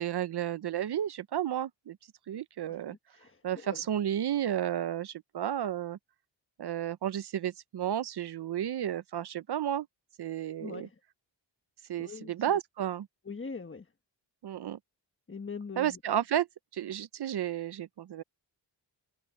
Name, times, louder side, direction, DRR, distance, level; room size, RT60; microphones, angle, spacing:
voice 1, 0.0-2.0 2.3-3.0 3.4-6.0 6.6-9.9 10.2-10.9 11.9-13.1 14.4-14.8 15.8-16.5 16.7-18.2, right 10 dB, 60° right, 0.6 m, -32 dB
voice 2, 3.1-3.8 10.6-10.9 12.0-12.6 13.2-13.9 15.3-16.0, left 4 dB, 25° left, 1.3 m, -42 dB
wide cardioid pair, 110°, 46 cm